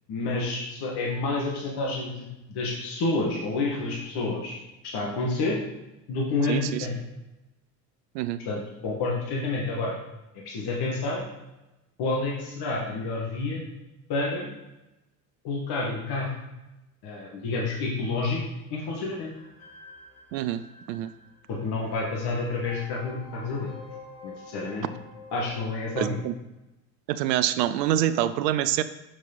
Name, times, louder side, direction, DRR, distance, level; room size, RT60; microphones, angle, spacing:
voice 1, 0.1-4.6 4.8-5.6 6.1-7.0 8.5-10.0 10.5-11.2 12.0-13.6 14.1-14.5 15.4-16.3 17.0-18.4 18.7-19.3 21.5-23.7 24.2-24.9 25.3-26.2, left 3 dB, 50° left, -2 dB, 1.9 m, -29 dB
voice 2, 6.5-6.9 8.1-8.4 20.3-20.6 20.9-21.1 26.0-26.3 27.1-28.8, right 12 dB, 80° right, 13 dB, 0.6 m, -26 dB
sound 1, 19.0-26.1, left 3 dB, 75° left, 2.7 m, -48 dB
6.5 x 6.1 x 4.0 m, 0.97 s
hypercardioid pair, 70°, 49 cm